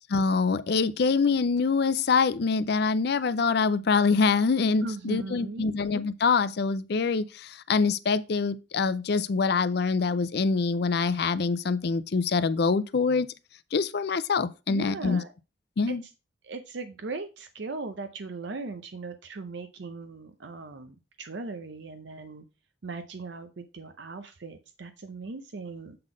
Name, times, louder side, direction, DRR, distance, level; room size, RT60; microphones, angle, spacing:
voice 1, 0.1-13.3 13.7-15.2 15.8-16.0, left 4 dB, 55° left, 0.4 m, -25 dB
voice 2, 4.8-5.7 14.7-15.3 15.9-16.0 16.4-22.5 22.8-26.0, right 3 dB, 65° right, 0.6 m, -38 dB
7.7 x 3.9 x 4.9 m
head